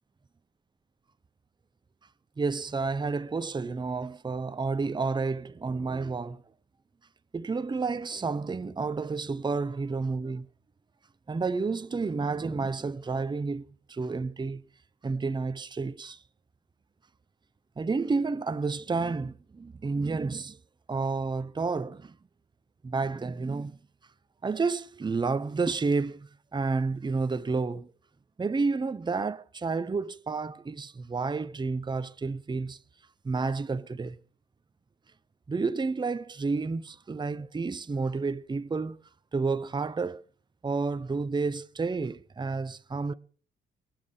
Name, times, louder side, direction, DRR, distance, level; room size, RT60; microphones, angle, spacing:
voice 1, 2.4-6.4 7.3-10.5 11.3-14.6 15.0-16.2 17.8-20.6 20.9-22.2 22.8-23.8 24.4-27.9 28.4-32.8 33.2-34.2 35.5-39.0 39.3-40.2 40.6-43.1, right 4 dB, 20° right, 0.9 m, -30 dB
22.5 x 7.7 x 6.7 m
cardioid pair, 90°, 20 cm